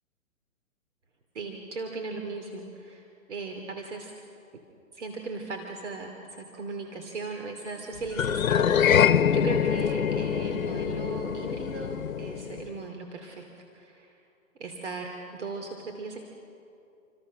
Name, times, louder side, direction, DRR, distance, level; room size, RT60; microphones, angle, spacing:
voice 1, 1.3-4.1 4.9-13.4 13.7-14.1 14.6-16.2, right 3 dB, 55° right, 3 dB, 2.9 m, -37 dB
Horror piano strings glissando up high strings, 8.1-12.7, left 8 dB, 70° left, 1.2 m, -24 dB
28.5 x 26.5 x 6.5 m, 2.7 s
hypercardioid pair, 170°, 42 cm